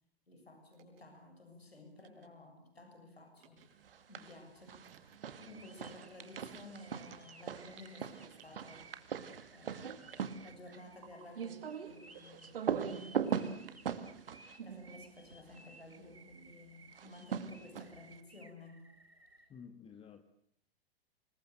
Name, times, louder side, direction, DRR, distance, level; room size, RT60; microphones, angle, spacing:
voice 1, 0.3-3.7 4.1-4.9 5.4-8.9 9.5-13.8 14.6-18.9, left 2 dB, 85° left, 5 dB, 7.1 m, -54 dB
sound 1, 0.7-1.0 2.0-2.3 3.3-3.7 4.8-5.2 5.7-6.1 7.0-8.0 8.3-8.7 9.1-9.5 9.8-10.2 10.9-11.3 12.1-13.0, right 10 dB, 35° right, 6.0 m, -59 dB
sound 2, 3.8-4.4 4.7-15.7 16.9-18.1, right 7 dB, 65° right, 2.3 m, -41 dB
sound 3, 5.2-19.5, right 3 dB, 85° right, 3.9 m, -60 dB
voice 2, 19.5-20.2, left 6 dB, 20° left, 8 dB, 1.8 m, -52 dB
27.0 x 22.0 x 8.0 m, 0.68 s
figure-of-eight pair, 105°, 30 cm